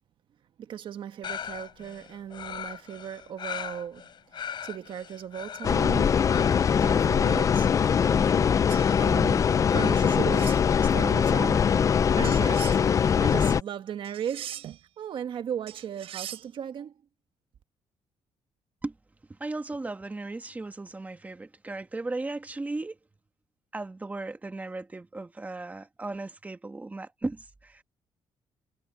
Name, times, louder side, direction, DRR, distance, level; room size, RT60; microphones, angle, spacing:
voice 1, 0.6-6.3 6.8-7.7 9.0-10.6 10.9-11.7 12.2-14.6 15.0-16.9, right 9 dB, 55° right, 1.5 m, -37 dB
sound 1, 1.2-9.9, left 8 dB, 50° left, 7.5 m, -40 dB
sound 2, 5.6-13.6, left 7 dB, 35° left, 0.4 m, -22 dB
sound 3, 8.7-8.9 10.0-10.6 12.2-12.8 14.0-14.8 15.7-16.5, right 12 dB, 75° right, 4.7 m, -40 dB
voice 2, 19.4-23.0 23.7-27.8, right 2 dB, 15° right, 1.6 m, -36 dB
cardioid pair, 145°, 10 cm